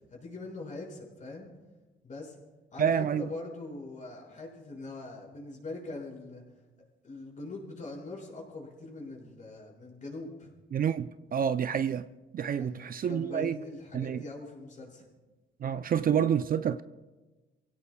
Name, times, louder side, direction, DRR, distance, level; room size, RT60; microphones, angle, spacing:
voice 1, 0.1-1.5 2.0-2.4 2.7-6.5 7.0-10.5 12.5-15.1, left 2 dB, 40° left, 6.0 m, -42 dB
voice 2, 2.8-3.2 10.7-12.0 12.3-13.6 13.9-14.2 15.6-16.8, right 8 dB, 45° right, 0.5 m, -28 dB
29.0 x 16.5 x 2.3 m
cardioid pair, 90°, 20 cm